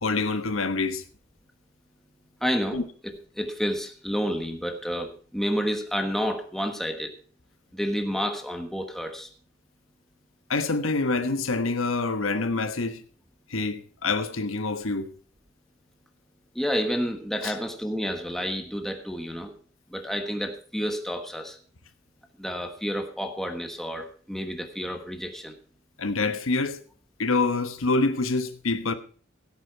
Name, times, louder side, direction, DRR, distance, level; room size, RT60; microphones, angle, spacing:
voice 1, 0.0-1.0 2.7-2.8 10.5-13.0 13.5-15.1 17.4-17.5 26.0-26.8 27.2-28.9, left 3 dB, 75° left, 1.2 m, -26 dB
voice 2, 2.4-7.1 7.7-9.3 16.5-19.5 19.9-21.6 22.4-25.6, equal, ahead, 1.3 m, -30 dB
16.5 x 8.5 x 4.5 m
head